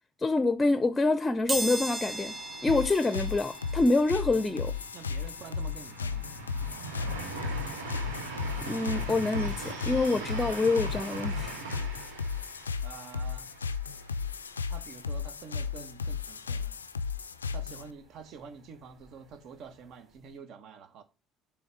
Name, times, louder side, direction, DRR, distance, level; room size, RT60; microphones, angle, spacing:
voice 1, 0.2-4.7 8.7-11.5, left 3 dB, 20° left, 0.6 m, -26 dB
sound 1, 1.5-12.2 12.6-12.7 13.9-14.0 14.3-16.3 16.7-19.3 19.7-19.9 20.2-20.3, right 1 dB, 30° right, 3.0 m, -42 dB
sound 2, 1.5-15.2 15.5-15.6 16.0-16.6, right 3 dB, 80° right, 1.6 m, -42 dB
sound 3, 2.7-17.9, left 5 dB, 85° left, 0.3 m, -35 dB
voice 2, 4.9-6.3 12.8-13.5 14.7-16.8 17.5-21.0, right 6 dB, 55° right, 1.2 m, -47 dB
7.0 x 3.3 x 6.1 m
figure-of-eight pair, 55°, 0 cm